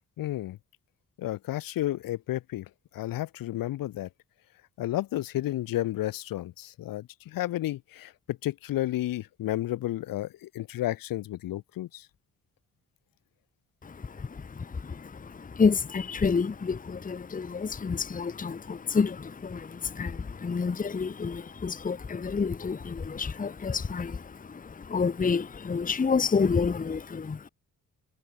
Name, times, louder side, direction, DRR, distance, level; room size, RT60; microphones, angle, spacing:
voice 1, 0.2-0.6 1.2-2.7 2.9-4.1 4.8-12.1, left 14 dB, 90° left, 1.8 m, -32 dB
voice 2, 13.8-27.5, left 5 dB, 25° left, 0.9 m, -29 dB
cardioid pair, 65°, 33 cm